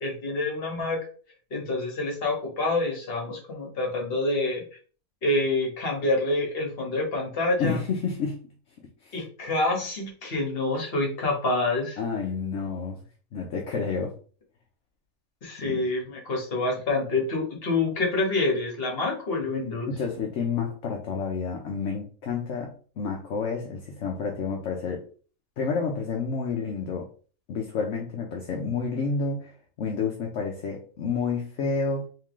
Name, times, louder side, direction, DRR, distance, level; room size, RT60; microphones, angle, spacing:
voice 1, 0.0-1.0 1.5-4.6 5.2-7.8 9.1-12.0 15.4-19.9, left 2 dB, 45° left, 1.4 m, -27 dB
voice 2, 7.6-8.4 9.0-9.1 12.0-13.0 13.3-14.2 15.6-15.8 19.9-25.0 25.6-27.1 27.5-32.1, left 5 dB, 60° left, 1.0 m, -29 dB
3.6 x 3.2 x 3.0 m
omnidirectional pair, 1.5 m